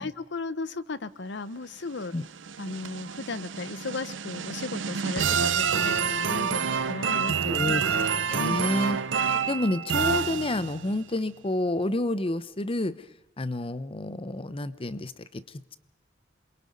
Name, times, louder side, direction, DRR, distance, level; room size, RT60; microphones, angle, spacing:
voice 1, 0.0-2.1 2.6-8.1 8.4-8.6, left 3 dB, 65° left, 15 dB, 0.8 m, -36 dB
sound 1, 2.0-10.9, right 6 dB, 80° right, 0.7 m, -28 dB
voice 2, 7.5-8.0 8.3-9.0 9.2-13.0 13.4-15.8, left 1 dB, 30° left, 15 dB, 0.8 m, -29 dB
28.0 x 22.5 x 5.4 m, 0.83 s
head